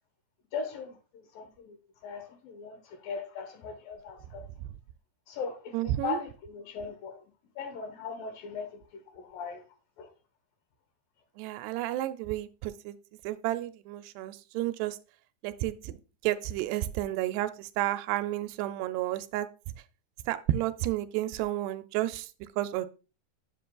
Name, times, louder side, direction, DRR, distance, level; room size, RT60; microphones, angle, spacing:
voice 1, 0.5-0.9 1.4-1.8 2.0-4.4 5.3-7.1 7.6-8.7 9.1-9.6 10.0-10.1, left 5 dB, 70° left, 7 dB, 2.5 m, -38 dB
voice 2, 5.7-6.2 11.4-13.0 13.2-15.0 15.4-16.0 16.2-19.5 20.3-22.9, right 14 dB, 85° right, 11 dB, 2.6 m, -31 dB
9.2 x 7.7 x 2.3 m, 0.33 s
omnidirectional pair, 4.7 m